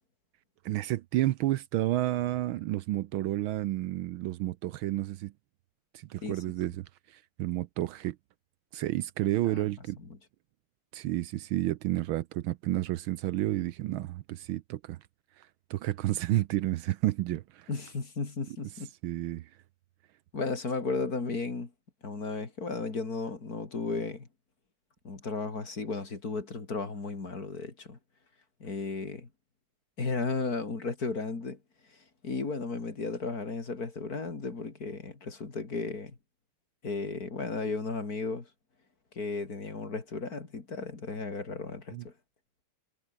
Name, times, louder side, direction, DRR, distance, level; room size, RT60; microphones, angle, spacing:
voice 1, 0.6-5.3 5.9-6.9 7.4-8.2 8.7-10.0 10.9-15.0 15.4-17.7 19.0-19.5 41.9-42.0, right 15 dB, 75° right, 1.4 m, -31 dB
voice 2, 17.7-18.9 20.3-21.7 22.0-24.3 25.1-28.0 28.6-29.3 30.0-31.6 32.2-36.2 36.8-38.5 39.2-42.1, left 4 dB, 40° left, 3.5 m, -34 dB
omnidirectional pair, 2.4 m